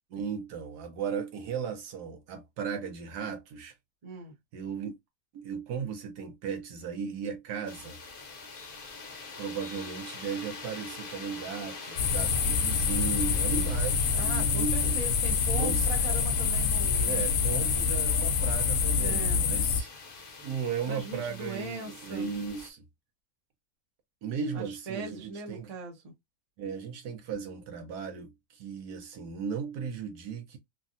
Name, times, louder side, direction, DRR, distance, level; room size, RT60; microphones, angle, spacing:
voice 1, 0.1-3.7 4.5-4.9 5.3-8.0 9.4-15.0 15.5-15.9 16.8-19.9 20.4-22.8 24.2-25.7 26.6-30.6, right 6 dB, 85° right, 1.4 m, -36 dB
voice 2, 4.0-4.3 14.1-17.2 19.0-19.4 20.9-22.3 24.5-26.1, right 3 dB, 35° right, 0.7 m, -39 dB
sound 1, 7.7-22.7, left 4 dB, 50° left, 0.7 m, -44 dB
sound 2, 12.0-19.8, left 6 dB, 70° left, 1.0 m, -26 dB
3.2 x 2.3 x 2.5 m
omnidirectional pair, 1.7 m